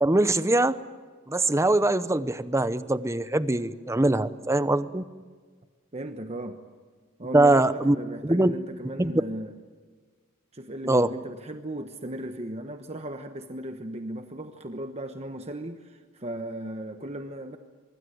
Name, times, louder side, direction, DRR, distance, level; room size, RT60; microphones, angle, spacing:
voice 1, 0.0-0.8 1.3-5.0 7.3-8.0 8.2-8.5 9.0-9.1 10.9-11.1, right 2 dB, 15° right, 13 dB, 0.7 m, -22 dB
voice 2, 5.9-6.6 7.2-9.5 10.5-17.6, right 1 dB, 30° right, 7 dB, 1.1 m, -36 dB
25.0 x 23.0 x 7.9 m, 1.5 s
head